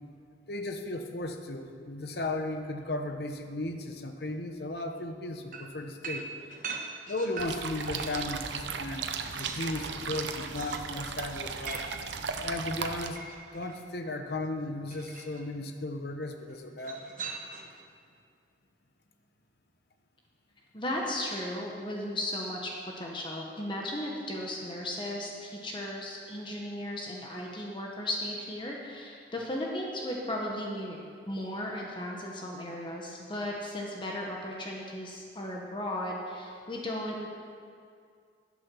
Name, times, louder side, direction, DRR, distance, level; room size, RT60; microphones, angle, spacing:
voice 1, 0.5-6.3 7.1-11.8 12.4-13.2 13.5-17.0, left 2 dB, 65° left, 5 dB, 0.9 m, -35 dB
sound 1, 5.5-8.4 8.8-13.8 14.9-15.5 16.8-17.8, right 4 dB, 50° right, 1.1 m, -42 dB
sound 2, 7.4-13.1, right 5 dB, 85° right, 0.7 m, -36 dB
voice 2, 20.7-31.0 31.3-37.3, left 1 dB, 30° left, -2 dB, 1.2 m, -36 dB
11.5 x 8.5 x 6.3 m, 2.3 s
head